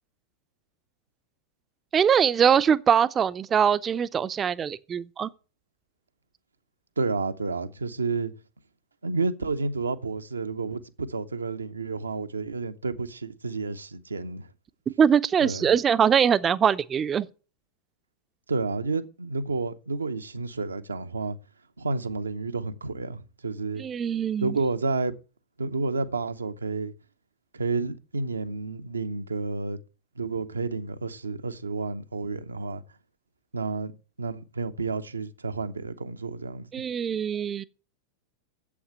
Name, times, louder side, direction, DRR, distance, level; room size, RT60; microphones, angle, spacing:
voice 1, 1.9-5.3 15.0-17.3 23.8-24.6 36.7-37.6, right 7 dB, 25° right, 0.6 m, -22 dB
voice 2, 7.0-8.3 9.0-14.5 15.4-15.7 18.5-21.4 21.8-23.9 24.4-25.2 25.6-26.9 27.5-29.8 30.2-32.8 33.5-36.7, right 3 dB, 75° right, 0.8 m, -30 dB
8.5 x 7.9 x 7.4 m
figure-of-eight pair, 90°, 0 cm